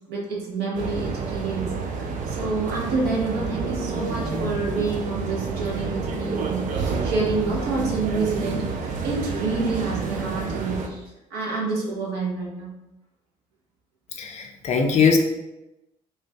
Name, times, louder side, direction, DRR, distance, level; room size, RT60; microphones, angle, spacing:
voice 1, 0.1-12.7, right 3 dB, 60° right, -3 dB, 0.9 m, -28 dB
sound 1, 0.7-10.9, right 4 dB, 45° right, 0.5 m, -29 dB
voice 2, 14.2-15.2, left 5 dB, 40° left, 2 dB, 0.5 m, -20 dB
2.4 x 2.2 x 3.4 m, 0.94 s
hypercardioid pair, 50°, 18 cm